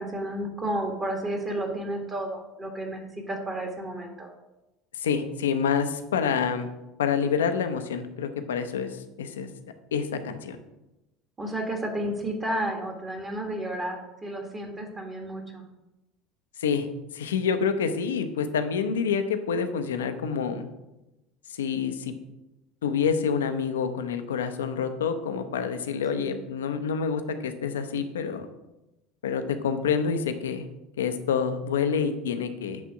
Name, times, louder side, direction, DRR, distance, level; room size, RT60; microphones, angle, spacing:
voice 1, 0.0-4.3 11.4-15.6 26.1-26.4, right 1 dB, 25° right, 2 dB, 1.5 m, -32 dB
voice 2, 5.0-6.7 7.0-9.5 9.9-10.6 16.6-16.9 17.1-20.7 21.5-22.1 22.8-28.5 29.2-30.6 31.0-32.8, left 6 dB, 70° left, 8 dB, 0.6 m, -27 dB
8.3 x 3.6 x 5.8 m, 0.97 s
figure-of-eight pair, 70°, 0 cm